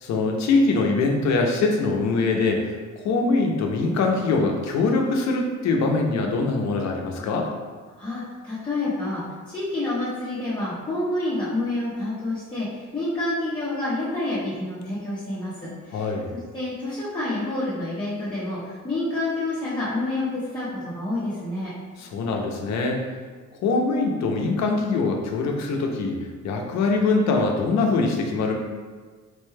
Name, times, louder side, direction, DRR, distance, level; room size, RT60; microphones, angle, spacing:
voice 1, 0.0-2.7 3.0-7.5 15.9-16.3 22.0-23.0 23.6-26.2 26.4-28.5, left 3 dB, 60° left, 2 dB, 0.6 m, -23 dB
voice 2, 8.0-16.1 16.5-21.7, left 2 dB, 15° left, -12 dB, 0.7 m, -28 dB
4.4 x 2.2 x 3.1 m, 1.5 s
cardioid pair, 170°, 31 cm